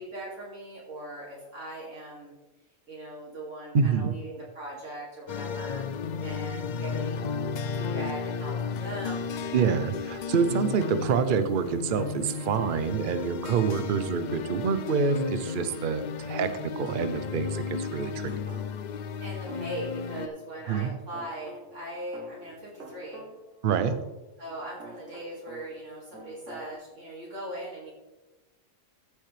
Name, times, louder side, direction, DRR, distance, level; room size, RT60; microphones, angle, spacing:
voice 1, 0.0-2.3 2.9-5.8 6.2-7.3 7.7-9.3 19.2-23.2 24.4-27.9, right 1 dB, 70° right, -5 dB, 2.6 m, -40 dB
voice 2, 3.7-4.1 9.5-18.3 20.7-20.9 23.6-23.9, right 6 dB, 50° right, 11 dB, 0.7 m, -27 dB
sound 1, 5.3-20.3, left 5 dB, 80° left, 0.4 m, -34 dB
sound 2, 16.8-17.9 18.5-20.5 20.8-25.9 26.1-26.7, right 3 dB, 85° right, 1.6 m, -48 dB
14.5 x 6.5 x 3.3 m, 1.0 s
omnidirectional pair, 1.3 m